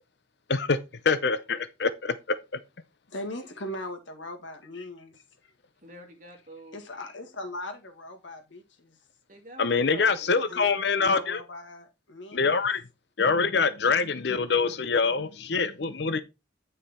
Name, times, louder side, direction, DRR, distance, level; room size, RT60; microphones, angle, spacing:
voice 1, 1.1-2.4 9.6-11.4 12.3-12.8 13.2-16.2, left 4 dB, 60° left, 0.6 m, -25 dB
voice 2, 3.1-5.1 5.4-5.5 6.7-9.0 10.2-10.7 11.0-12.6, left 1 dB, 75° left, 1.9 m, -39 dB
voice 3, 5.8-6.8 9.3-10.5, right 1 dB, 40° right, 2.6 m, -46 dB
9.4 x 5.4 x 4.2 m
head